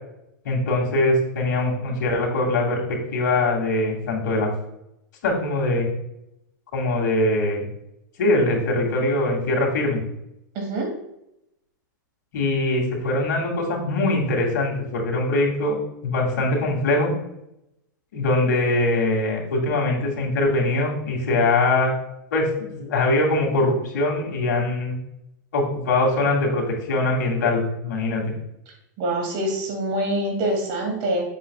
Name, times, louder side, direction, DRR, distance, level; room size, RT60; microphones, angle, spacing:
voice 1, 0.4-2.8 3.1-4.5 5.2-5.9 6.7-7.7 8.2-10.0 12.3-15.8 16.0-17.1 18.1-21.9 22.3-22.5 22.7-25.0 25.5-28.3, left 2 dB, 70° left, -1 dB, 2.6 m, -22 dB
voice 2, 10.5-10.9 29.0-31.2, right 1 dB, 45° right, 1 dB, 2.6 m, -25 dB
7.8 x 7.5 x 2.4 m, 0.83 s
hypercardioid pair, 130°, 10 cm